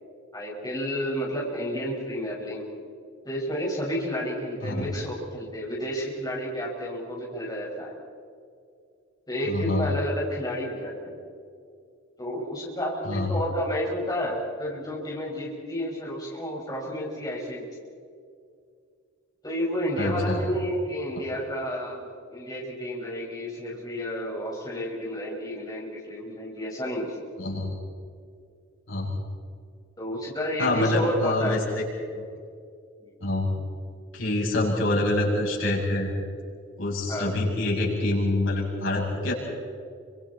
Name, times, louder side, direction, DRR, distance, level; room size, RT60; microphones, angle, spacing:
voice 1, 0.3-2.6 3.3-8.0 9.3-11.1 12.2-17.7 19.4-27.2 30.0-31.6 33.0-33.1 37.1-37.3, equal, 20° left, -5 dB, 5.4 m, -31 dB
voice 2, 9.5-9.9 13.0-13.3 20.0-20.4 27.4-27.7 28.9-29.1 30.6-31.9 32.1-32.2 33.2-33.5 34.1-36.1 36.8-39.3, left 2 dB, 80° left, -4 dB, 7.2 m, -26 dB
29.5 x 26.0 x 4.2 m, 2.3 s
head